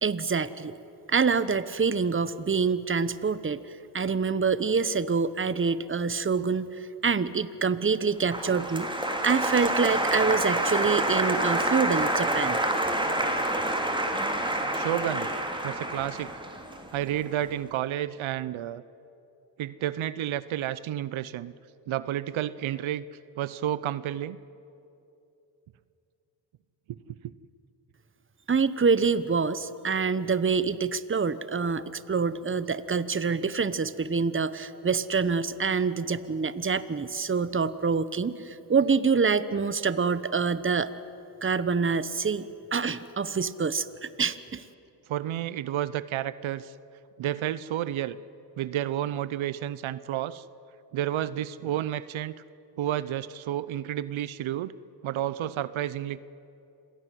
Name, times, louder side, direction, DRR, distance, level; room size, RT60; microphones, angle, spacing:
voice 1, 0.0-0.8 1.1-3.6 3.9-6.7 7.0-8.9 9.2-12.6 28.5-40.9 41.4-44.6, right 5 dB, 25° right, 15 dB, 1.0 m, -26 dB
Applause, 8.3-17.3, right 1 dB, 10° right, 3.0 m, -28 dB
voice 2, 14.7-15.3 15.6-16.3 16.9-18.8 19.6-21.5 21.9-23.0 23.4-24.4 45.1-46.7 47.2-48.2 48.6-50.4 50.9-52.3 52.8-54.7 55.0-56.2, right 12 dB, 85° right, 17 dB, 0.7 m, -31 dB
26.5 x 17.0 x 9.2 m, 2.8 s
cardioid pair, 75°, 46 cm